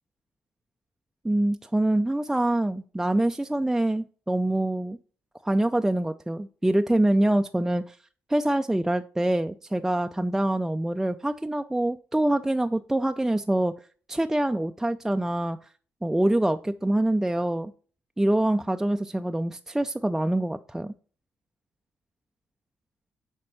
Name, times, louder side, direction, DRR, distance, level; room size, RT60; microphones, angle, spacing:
voice 1, 1.2-5.0 5.4-8.0 8.3-13.7 14.1-15.6 16.0-17.7 18.2-20.9, right 1 dB, 10° right, 0.4 m, -25 dB
7.6 x 4.4 x 5.8 m
cardioid pair, 85°, 5 cm